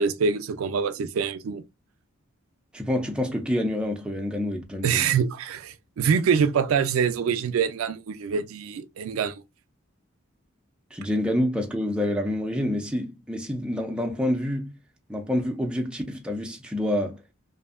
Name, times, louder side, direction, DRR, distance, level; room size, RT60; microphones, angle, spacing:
voice 1, 0.0-1.6 4.8-9.4, right 6 dB, 80° right, 0.4 m, -25 dB
voice 2, 2.7-5.1 10.9-14.7 15.1-17.2, left 1 dB, 5° right, 0.3 m, -27 dB
2.7 x 2.5 x 2.4 m
head